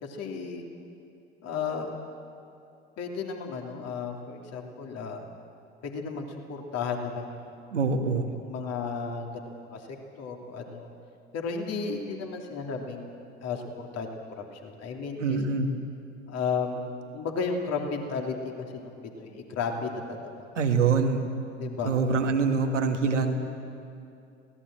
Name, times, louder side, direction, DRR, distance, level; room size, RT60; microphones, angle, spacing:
voice 1, 0.0-0.6 1.4-1.9 3.0-5.3 5.8-7.4 8.3-9.9 10.2-10.9 11.3-15.4 16.3-20.3 21.6-21.9 22.7-22.9, left 5 dB, 45° left, 2 dB, 3.0 m, -34 dB
voice 2, 7.7-8.3 15.2-15.7 20.6-21.2 21.9-23.4, right 5 dB, 80° right, 5 dB, 1.8 m, -24 dB
23.0 x 17.5 x 7.7 m, 2.6 s
figure-of-eight pair, 70°, 36 cm